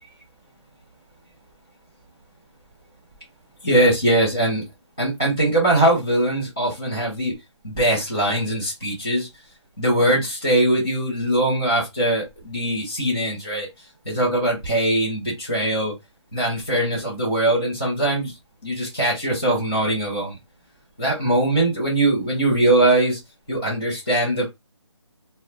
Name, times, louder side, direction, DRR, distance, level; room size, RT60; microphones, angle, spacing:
voice 1, 3.6-4.6 5.0-7.3 7.6-9.3 9.8-13.7 14.1-15.9 16.3-18.3 18.6-20.3 21.0-23.2 23.5-24.4, right 1 dB, 5° left, 0.4 m, -21 dB
2.4 x 2.0 x 3.8 m
figure-of-eight pair, 165°, 16 cm